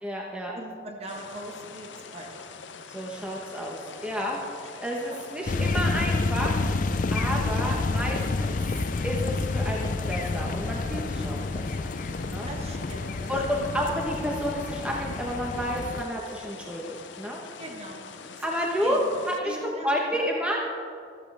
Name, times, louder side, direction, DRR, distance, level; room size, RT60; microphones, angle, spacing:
voice 1, 0.0-0.5 2.9-6.6 7.1-8.6 9.0-11.9 12.2-12.5 13.3-17.4 18.4-19.0 19.3-20.6, equal, 5° right, -2 dB, 1.2 m, -30 dB
voice 2, 0.5-2.5 4.8-4.9 5.1-5.2 7.2-7.8 12.4-13.3 17.6-18.4 18.8-19.0 19.4-20.2, right 1 dB, 35° right, 1 dB, 1.4 m, -41 dB
sound 1, 1.1-19.4, left 5 dB, 80° left, 0.7 m, -44 dB
sound 2, 5.5-16.0, left 3 dB, 45° left, 0.5 m, -29 dB
14.0 x 13.5 x 3.5 m, 2.2 s
head